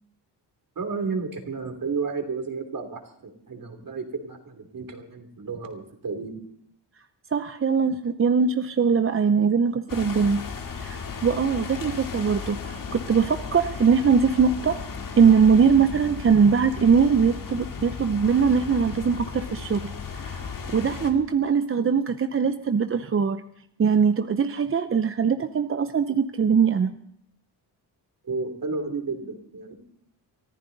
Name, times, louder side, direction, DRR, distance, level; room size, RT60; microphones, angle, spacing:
voice 1, 0.7-6.3 28.2-29.7, right 4 dB, 50° right, 4 dB, 3.0 m, -32 dB
voice 2, 7.3-10.4 10.7-14.8 15.2-23.4 23.8-26.9, right 6 dB, 30° right, 9 dB, 0.6 m, -21 dB
sound 1, 9.9-21.1, left 5 dB, 50° left, 2.2 m, -35 dB
24.0 x 14.5 x 4.0 m, 0.68 s
cardioid pair, 95°, 43 cm